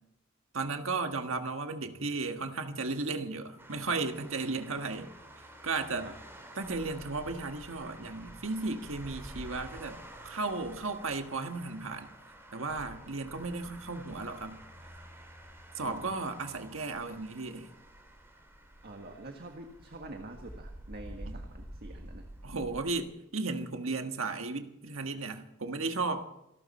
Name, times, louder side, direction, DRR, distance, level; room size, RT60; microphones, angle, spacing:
voice 1, 0.5-5.1 5.6-6.1 6.5-12.1 12.5-14.6 15.7-17.7 21.2-21.3 22.4-26.2, right 3 dB, 70° right, 6 dB, 1.6 m, -35 dB
sound 1, 3.6-23.0, right 1 dB, 10° right, 3.5 m, -49 dB
voice 2, 18.8-22.2, right 2 dB, 50° right, 3 dB, 1.7 m, -46 dB
27.0 x 12.5 x 4.3 m, 0.85 s
head